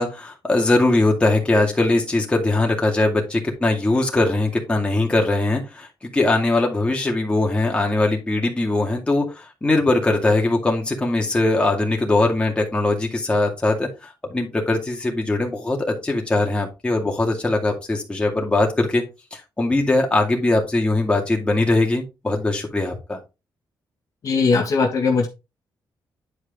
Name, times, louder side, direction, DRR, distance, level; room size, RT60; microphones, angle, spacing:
voice 1, 0.0-19.0 19.3-23.2, left 2 dB, 15° left, 0 dB, 2.1 m, -21 dB
voice 2, 24.2-25.3, left 4 dB, 50° left, 2 dB, 1.5 m, -19 dB
9.9 x 4.8 x 3.6 m, 0.26 s
wide cardioid pair, 160°, 8 cm